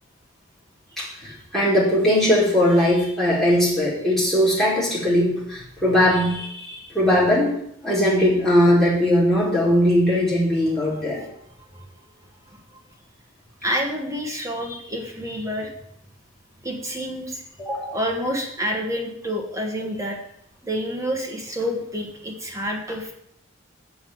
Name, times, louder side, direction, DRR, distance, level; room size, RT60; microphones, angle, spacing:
voice 1, 1.0-7.6 7.8-11.2 17.7-18.0, equal, ahead, -8 dB, 4.5 m, -20 dB
voice 2, 10.9-11.3 11.7-11.8 12.5-12.6 13.6-15.7 16.6-17.4 17.9-20.2 20.6-23.1, equal, 15° right, 0 dB, 1.4 m, -28 dB
7.4 x 7.1 x 7.9 m, 0.71 s
head